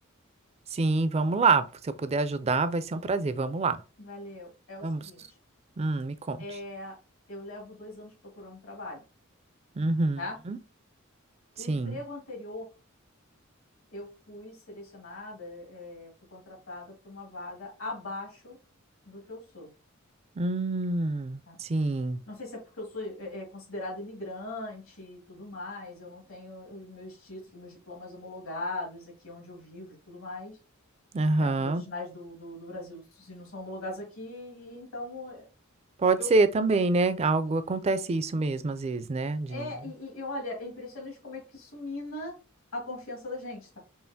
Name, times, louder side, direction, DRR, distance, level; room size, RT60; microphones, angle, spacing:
voice 1, 0.7-3.8 4.8-5.0 5.8-6.4 9.8-10.6 11.6-12.0 20.4-22.2 31.1-31.8 36.0-39.7, right 3 dB, 30° right, 0.4 m, -26 dB
voice 2, 4.0-5.2 6.4-7.0 7.3-9.0 10.2-10.4 11.6-12.7 13.9-18.6 19.1-19.7 21.5-21.6 22.3-30.6 31.4-35.5 36.2-36.3 39.5-42.4 42.7-43.8, left 2 dB, 75° left, 2.0 m, -40 dB
5.6 x 2.4 x 2.7 m
head